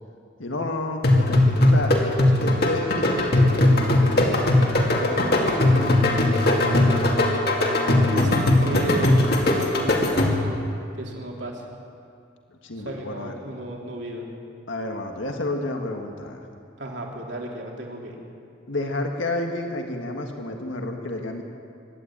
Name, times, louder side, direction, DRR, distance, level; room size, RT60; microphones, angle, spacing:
voice 1, 0.4-1.9 2.4-4.4 5.0-7.3 12.6-13.4 14.7-16.5 18.7-21.4, left 2 dB, 85° left, 3 dB, 1.7 m, -30 dB
sound 1, 1.0-10.6, left 1 dB, 55° left, 2.6 m, -19 dB
voice 2, 8.1-10.4 10.9-11.6 12.8-14.2 16.8-18.2, right 1 dB, 65° right, -1 dB, 3.3 m, -33 dB
24.5 x 12.0 x 8.9 m, 2.5 s
head